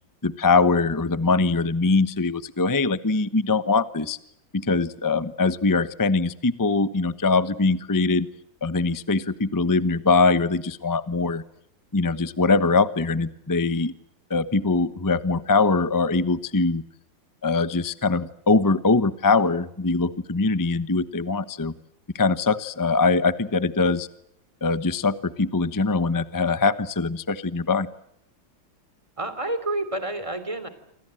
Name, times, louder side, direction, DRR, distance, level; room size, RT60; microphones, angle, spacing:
voice 1, 0.2-4.2 4.5-8.3 8.6-11.4 11.9-13.9 14.3-16.8 17.4-21.7 22.1-24.1 24.6-27.9, left 3 dB, 20° left, 14 dB, 0.5 m, -22 dB
voice 2, 29.2-30.7, right 2 dB, 15° right, 12 dB, 3.2 m, -29 dB
28.0 x 25.5 x 7.8 m, 0.76 s
omnidirectional pair, 2.3 m